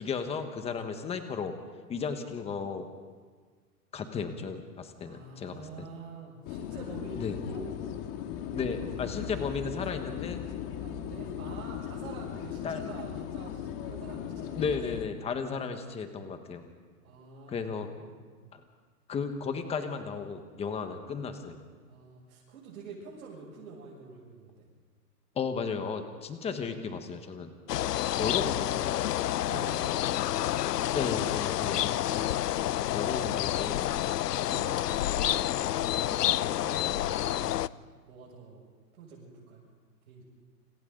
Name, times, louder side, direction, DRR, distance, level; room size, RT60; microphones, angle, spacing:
voice 1, 0.0-1.5 1.9-2.9 3.9-5.9 7.2-7.4 8.5-10.4 12.6-12.8 14.5-16.7 17.5-17.9 18.5-18.6 19.1-21.6 25.3-27.5 28.2-29.0 30.9-32.3 32.9-34.1, left 5 dB, 10° left, 7 dB, 1.4 m, -34 dB
voice 2, 5.0-7.8 9.3-9.5 10.7-14.9 17.0-18.5 21.9-24.7 27.8-28.2 29.4-30.1 34.5-38.6 39.0-39.6 40.1-40.2, right 4 dB, 65° right, -5 dB, 7.3 m, -47 dB
sound 1, 6.4-15.0, left 10 dB, 35° left, 1.9 m, -38 dB
sound 2, 27.7-37.7, left 13 dB, 80° left, 0.7 m, -29 dB
28.5 x 27.0 x 4.0 m, 1.5 s
hypercardioid pair, 145°, 48 cm